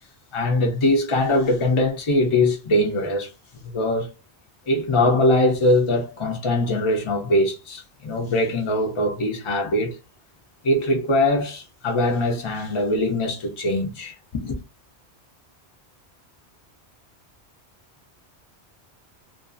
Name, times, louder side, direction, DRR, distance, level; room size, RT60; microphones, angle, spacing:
voice 1, 0.3-3.3 3.6-4.1 4.7-10.0 10.6-14.6, left 1 dB, 45° left, 0.4 m, -22 dB
2.5 x 2.3 x 2.5 m
omnidirectional pair, 1.1 m